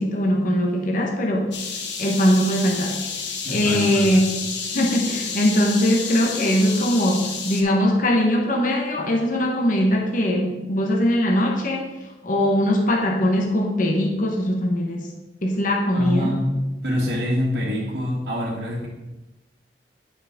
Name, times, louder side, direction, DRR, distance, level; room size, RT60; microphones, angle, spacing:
voice 1, 0.0-1.5 2.0-3.0 3.5-4.5 4.7-11.9 12.2-15.1 15.4-16.4, equal, 50° left, 0 dB, 1.1 m, -21 dB
sound 1, 1.5-7.6, left 5 dB, 90° left, 1.0 m, -30 dB
voice 2, 3.4-4.2 15.9-16.5 16.8-18.9, left 1 dB, 60° right, -8 dB, 1.5 m, -25 dB
10.0 x 5.8 x 3.6 m, 1.1 s
head